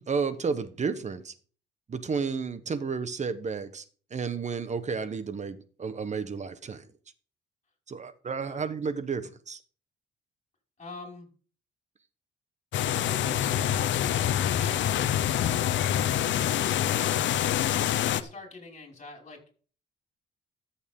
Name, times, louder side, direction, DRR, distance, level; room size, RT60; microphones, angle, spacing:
voice 1, 0.0-1.3 1.9-3.8 4.1-6.8 7.9-9.6, right 5 dB, 35° right, 13 dB, 1.1 m, -32 dB
voice 2, 10.8-11.3 12.8-14.1 14.5-15.9 17.9-19.4, left 3 dB, 35° left, 1 dB, 5.4 m, -45 dB
sound 1, 12.7-18.2, left 11 dB, 70° left, 0.7 m, -26 dB
14.0 x 7.2 x 3.7 m, 0.41 s
cardioid pair, 90°, 20 cm